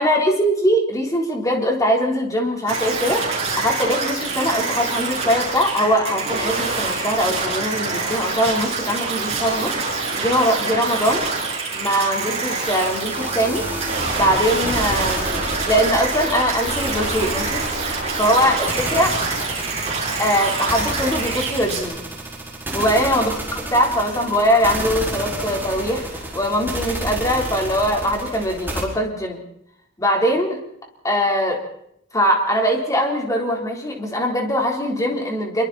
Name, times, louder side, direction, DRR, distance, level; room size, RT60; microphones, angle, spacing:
voice 1, 0.0-3.3 3.6-11.2 11.7-13.6 14.1-17.7 18.2-19.1 20.2-22.0 22.7-23.3 23.7-29.4 30.0-30.6 31.0-31.6 32.1-35.6, equal, 15° left, 1 dB, 3.9 m, -21 dB
sound 1, 2.7-21.8, right 3 dB, 35° right, 6.8 m, -26 dB
sound 2, 12.6-28.8, right 1 dB, 10° right, 4.8 m, -30 dB
26.0 x 23.5 x 4.3 m, 0.76 s
head